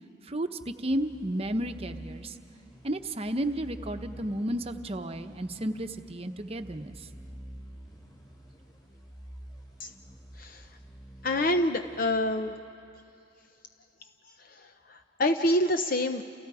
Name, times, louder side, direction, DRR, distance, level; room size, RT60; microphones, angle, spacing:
voice 1, 0.2-2.4 2.8-7.1, right 1 dB, 35° right, 7 dB, 0.9 m, -32 dB
sound 1, 0.9-12.7, right 1 dB, 30° left, 7.8 m, -49 dB
voice 2, 11.2-12.5 14.9-16.2, left 1 dB, 50° left, 7 dB, 0.7 m, -26 dB
29.5 x 29.0 x 4.9 m, 2.6 s
head